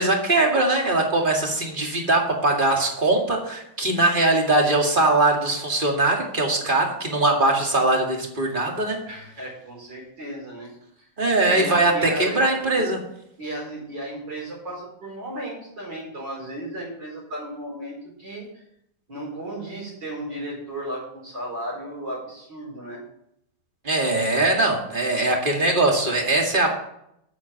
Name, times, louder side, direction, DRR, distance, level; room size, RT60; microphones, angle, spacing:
voice 1, 0.0-9.0 11.2-13.0 23.8-26.7, right 2 dB, 25° right, 0 dB, 2.2 m, -21 dB
voice 2, 9.1-11.1 11.5-12.4 13.4-18.5 19.1-23.0, right 1 dB, 55° right, -3 dB, 5.3 m, -34 dB
8.4 x 7.4 x 7.3 m, 0.76 s
omnidirectional pair, 2.3 m